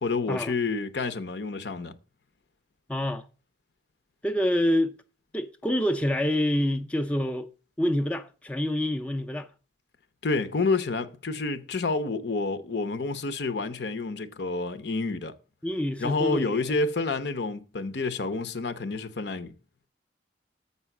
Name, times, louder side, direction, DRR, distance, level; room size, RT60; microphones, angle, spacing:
voice 1, 0.0-1.9 10.2-15.3 16.0-19.5, left 3 dB, 65° left, 0.7 m, -29 dB
voice 2, 2.9-3.2 4.2-4.9 5.3-7.5 7.8-9.5 15.6-16.7, left 1 dB, 5° left, 0.5 m, -27 dB
7.3 x 5.5 x 5.9 m
head